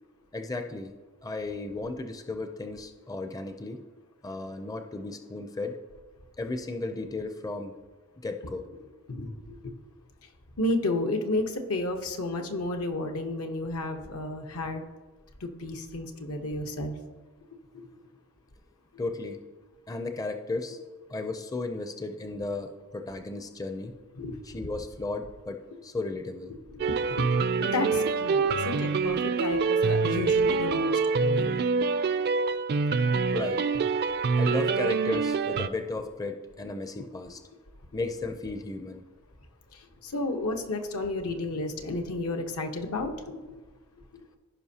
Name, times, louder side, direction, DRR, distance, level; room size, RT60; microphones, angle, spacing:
voice 1, 0.3-0.9 1.2-3.8 4.2-5.8 6.4-7.7 8.2-8.7 19.0-19.4 19.9-20.8 21.1-23.9 24.4-26.5 32.5-32.6 33.3-33.6 34.4-37.4 37.9-39.0, left 3 dB, 15° left, 6 dB, 0.4 m, -34 dB
voice 2, 9.1-9.7 10.6-14.8 15.4-17.0 17.7-17.9 24.1-24.4 26.7-27.0 27.6-31.6 33.9-34.0 37.0-37.1 39.7-43.6, left 2 dB, 80° left, 4 dB, 1.0 m, -32 dB
sound 1, 26.8-35.7, right 4 dB, 45° right, 0.4 m, -25 dB
15.5 x 5.3 x 2.8 m, 1.2 s
head